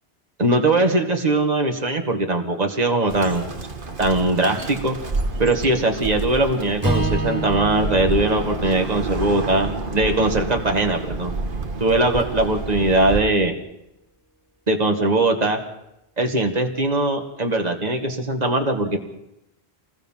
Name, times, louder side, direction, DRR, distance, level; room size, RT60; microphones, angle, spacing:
voice 1, 0.4-3.5 4.0-5.0 5.4-11.3 11.8-13.5 14.7-15.6 16.2-19.0, right 2 dB, 40° right, 3 dB, 2.2 m, -20 dB
Bird, 3.1-13.2, right 3 dB, 55° right, 1.7 m, -29 dB
Strum, 6.8-11.2, right 1 dB, 20° right, 4.1 m, -30 dB
27.0 x 20.0 x 5.8 m, 0.87 s
omnidirectional pair, 1.1 m